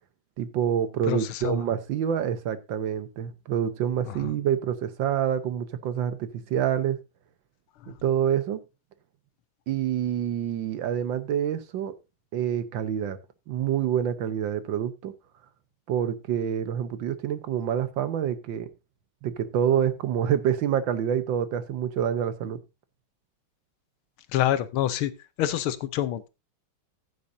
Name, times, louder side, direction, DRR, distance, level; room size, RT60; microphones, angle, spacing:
voice 1, 0.4-7.0 7.9-8.6 9.7-11.9 12.3-13.2 13.5-15.1 15.9-18.7 19.2-22.6, right 9 dB, 70° right, 1.5 m, -27 dB
voice 2, 1.1-1.6 4.1-4.3 7.8-7.9 24.3-25.1 25.4-26.3, left 12 dB, 85° left, 1.7 m, -27 dB
14.5 x 8.6 x 2.6 m
omnidirectional pair, 2.3 m